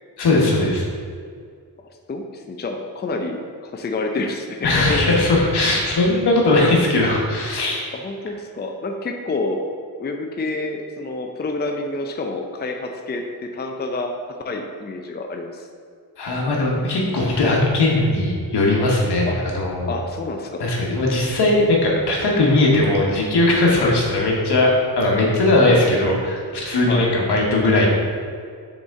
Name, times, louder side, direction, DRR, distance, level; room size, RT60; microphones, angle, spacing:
voice 1, 0.2-0.9 4.6-7.9 16.2-19.3 19.5-19.9 20.6-27.9, left 2 dB, 75° left, -2 dB, 1.3 m, -19 dB
voice 2, 1.8-5.1 7.9-9.6 10.0-15.7 19.3-19.4 19.9-20.7 23.8-24.0 26.8-27.1, left 2 dB, 25° left, 3 dB, 0.5 m, -28 dB
6.0 x 4.3 x 3.6 m, 2.1 s
cardioid pair, 70°, 40 cm